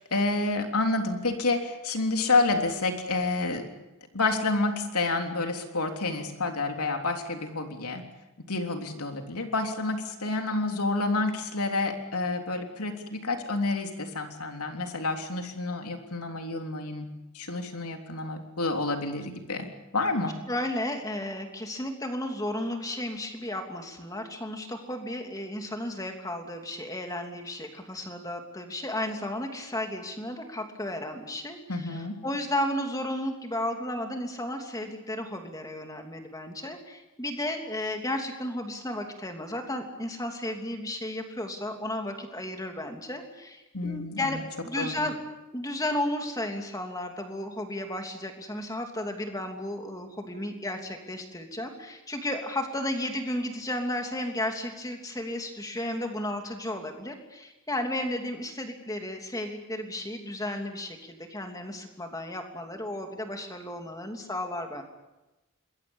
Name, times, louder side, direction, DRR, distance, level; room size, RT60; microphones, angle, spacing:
voice 1, 0.1-3.7 4.1-8.0 8.5-17.1 17.3-19.7 19.9-20.3 31.7-32.2 43.7-44.4 44.8-45.0, left 3 dB, 90° left, 4 dB, 3.5 m, -29 dB
voice 2, 20.5-44.4 44.6-45.2 45.5-64.8, left 1 dB, 15° left, 4 dB, 2.9 m, -33 dB
26.5 x 21.5 x 7.2 m, 1.0 s
head